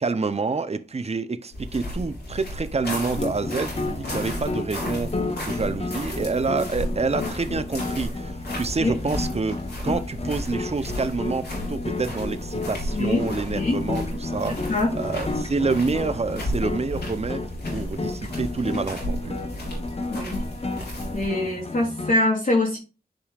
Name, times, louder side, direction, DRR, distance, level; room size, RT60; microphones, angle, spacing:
voice 1, 0.0-9.6 9.8-19.4, right 4 dB, 40° right, 0.6 m, -28 dB
sound 1, 1.5-21.3, equal, 85° left, 3.9 m, -34 dB
sound 2, 3.2-22.1, left 3 dB, 40° left, 1.0 m, -32 dB
voice 2, 12.9-13.2 13.5-13.8 14.7-14.9 20.1-20.4 21.1-22.8, left 2 dB, 55° left, 3.0 m, -23 dB
10.5 x 5.1 x 2.4 m
wide cardioid pair, 70°, 17 cm